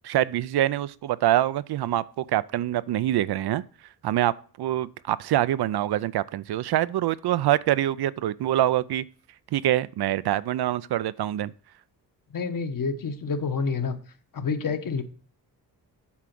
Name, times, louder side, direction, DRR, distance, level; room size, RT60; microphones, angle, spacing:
voice 1, 0.0-3.6 4.0-9.0 9.5-11.5, right 13 dB, 70° right, 0.5 m, -25 dB
voice 2, 12.3-14.0 14.3-15.0, left 5 dB, 55° left, 1.1 m, -28 dB
8.5 x 5.0 x 5.9 m
cardioid pair, 75°, 41 cm